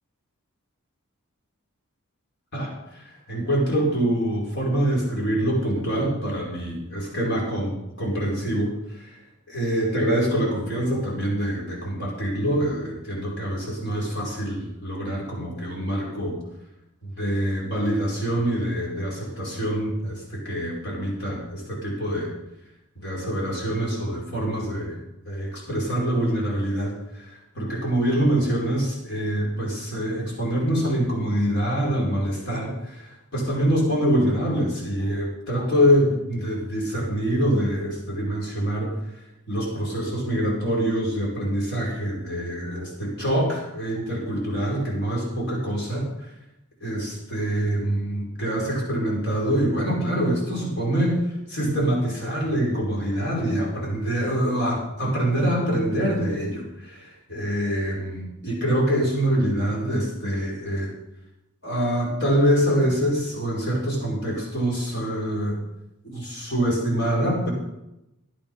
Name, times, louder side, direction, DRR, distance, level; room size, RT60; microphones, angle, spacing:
voice 1, 2.5-9.2 9.5-16.4 17.0-22.3 23.0-25.0 25.3-38.9 39.5-46.3 46.8-51.2 51.5-60.9 61.6-65.6 66.0-67.5, equal, 50° left, -3 dB, 5.2 m, -25 dB
14.5 x 10.5 x 5.5 m, 0.92 s
head